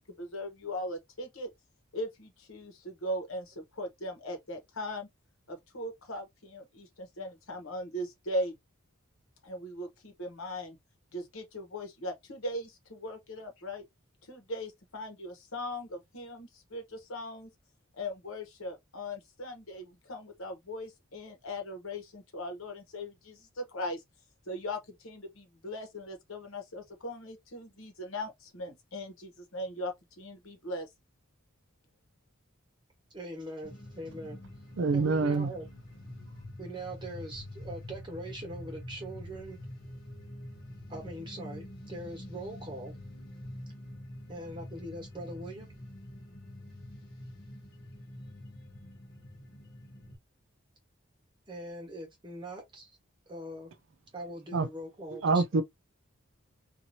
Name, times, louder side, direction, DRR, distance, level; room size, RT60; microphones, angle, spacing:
voice 1, 0.0-1.5 1.9-5.1 5.5-8.6 9.4-10.8 11.1-13.8 14.3-17.5 17.9-24.0 24.5-30.9, left 1 dB, 75° left, 1.1 m, -39 dB
voice 2, 33.1-34.4 34.9-35.7 36.6-39.6 40.9-42.9 44.3-45.7 51.5-52.9 53.3-53.7 54.1-55.6, right 1 dB, 20° right, 1.2 m, -42 dB
sound 1, 33.6-50.1, left 1 dB, 50° left, 1.5 m, -46 dB
voice 3, 34.8-35.5 54.5-54.7 55.2-55.6, right 3 dB, 60° right, 0.4 m, -25 dB
2.8 x 2.6 x 2.6 m
head